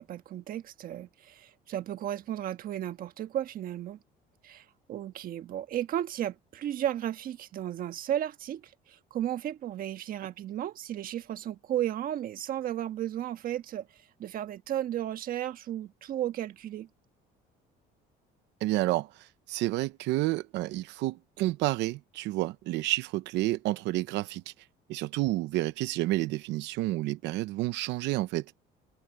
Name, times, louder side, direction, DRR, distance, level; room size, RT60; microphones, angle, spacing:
voice 1, 0.0-4.0 4.4-16.9, right 11 dB, 50° right, 1.4 m, -34 dB
voice 2, 18.6-24.5 24.9-28.4, right 17 dB, 80° right, 0.8 m, -30 dB
cardioid pair, 130°, 18 cm